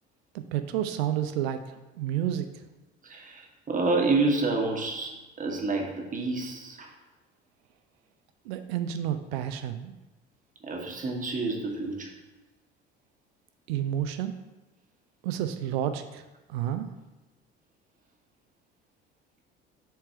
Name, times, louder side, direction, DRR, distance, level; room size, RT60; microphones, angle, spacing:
voice 1, 0.3-2.5 8.4-9.9 13.7-14.3 15.2-16.2 16.5-16.9, right 10 dB, 65° right, 9 dB, 0.5 m, -30 dB
voice 2, 3.0-6.9 10.6-12.1, right 3 dB, 25° right, 1 dB, 1.2 m, -28 dB
4.5 x 4.4 x 5.6 m, 1.1 s
figure-of-eight pair, 55°, 33 cm